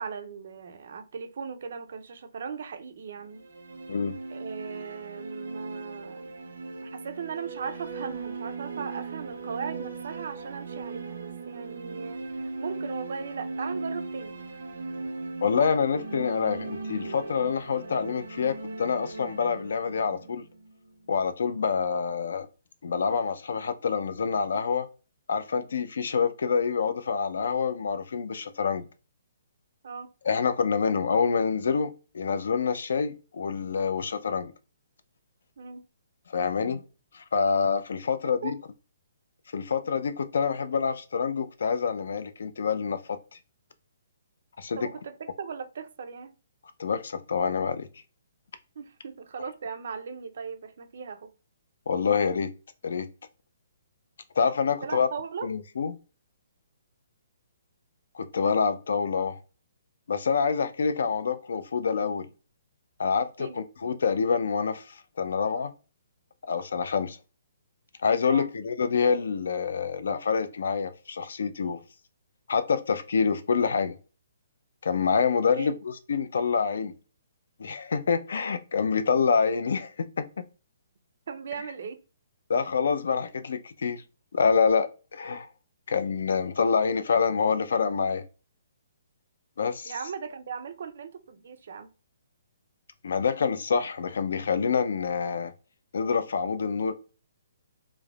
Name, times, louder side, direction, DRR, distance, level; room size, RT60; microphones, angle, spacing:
voice 1, 0.0-3.4 4.3-6.3 6.8-14.4 29.8-30.1 35.6-35.8 38.4-38.5 44.8-46.4 48.8-51.3 54.8-55.5 63.4-63.6 68.2-68.5 75.3-75.7 81.3-82.0 89.9-91.9, right 6 dB, 60° right, 0.4 m, -38 dB
sound 1, 3.2-21.2, right 3 dB, 80° right, 0.7 m, -38 dB
voice 2, 15.4-20.5 21.1-22.5 22.8-24.9 25.3-28.9 30.2-34.5 36.3-36.8 37.1-38.5 39.5-43.4 44.6-44.9 46.8-47.9 51.9-52.5 52.8-53.1 54.4-55.1 55.4-56.0 58.1-59.4 60.1-62.3 63.0-65.7 66.5-67.2 68.0-71.8 72.5-74.0 74.8-76.9 77.6-80.4 82.5-84.0 84.3-85.5 85.9-88.2 89.6-89.9 93.0-95.5 95.9-96.9, left 5 dB, 70° left, 0.4 m, -26 dB
3.2 x 2.0 x 2.3 m
hypercardioid pair, 165°, 0 cm